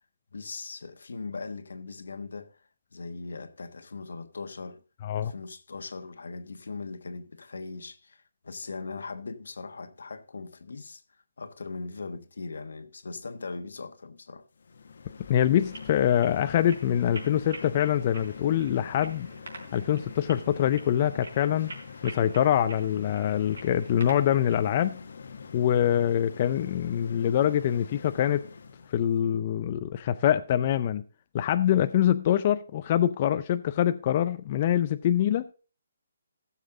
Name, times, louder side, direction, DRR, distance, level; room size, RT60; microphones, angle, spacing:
voice 1, 0.3-2.6 2.9-4.8 5.1-11.0 11.4-14.5, left 4 dB, 80° left, 1.3 m, -39 dB
sound 1, 14.6-29.1, left 5 dB, 60° left, 1.0 m, -44 dB
voice 2, 15.3-19.3 19.7-21.7 22.0-25.0 25.5-28.4 28.9-31.0 31.3-35.5, left 10 dB, 30° left, 0.4 m, -24 dB
sound 2, 15.6-24.7, right 2 dB, 80° right, 4.1 m, -47 dB
16.0 x 7.3 x 3.8 m
hypercardioid pair, 170°, 0 cm